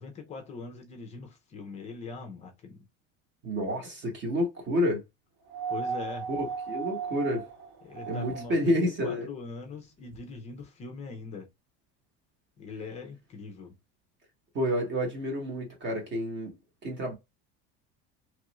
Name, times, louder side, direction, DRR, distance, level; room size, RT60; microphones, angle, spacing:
voice 1, 0.0-2.9 5.7-6.3 7.8-11.5 12.6-13.7, left 4 dB, 20° left, 0.4 m, -41 dB
voice 2, 3.4-5.0 6.3-7.5 8.1-9.3 14.5-16.5 16.8-17.1, equal, 35° right, 0.9 m, -29 dB
sound 1, 5.5-8.7 10.1-10.2, right 6 dB, 65° right, 1.2 m, -36 dB
3.0 x 2.4 x 2.8 m
cardioid pair, 170°, 32 cm